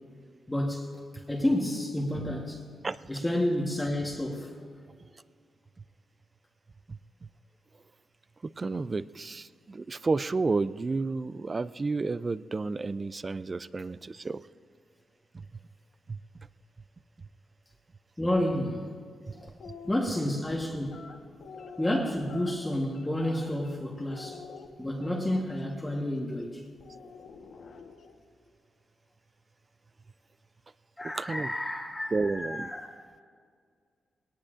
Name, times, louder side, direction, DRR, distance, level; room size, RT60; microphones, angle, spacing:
voice 1, 0.5-0.9 1.3-2.6 3.1-4.5 18.2-18.9 19.4-19.5 19.9-21.0 21.8-24.4 24.8-26.6 31.0-33.0, left 1 dB, 10° left, 1.2 m, -30 dB
voice 2, 8.6-14.4 15.3-15.5 16.1-16.2 31.1-31.5 32.1-32.7, right 3 dB, 30° right, 0.3 m, -31 dB
sound 1, 19.5-20.1 20.8-23.8 24.1-25.6 26.8-28.2, left 5 dB, 70° left, 1.1 m, -46 dB
20.5 x 18.5 x 2.5 m
cardioid pair, 120°, 0 cm